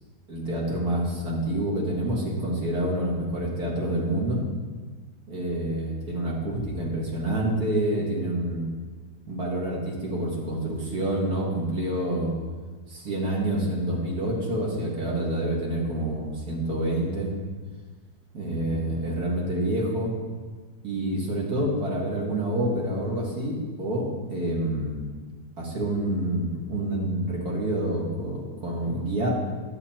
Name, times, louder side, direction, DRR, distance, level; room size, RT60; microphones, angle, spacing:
voice 1, 0.3-4.4 5.3-8.7 9.3-12.3 12.9-17.3 18.3-20.1 20.8-25.0 25.6-29.3, right 1 dB, 65° right, -3 dB, 2.4 m, -27 dB
10.5 x 7.7 x 4.4 m, 1.4 s
omnidirectional pair, 1.8 m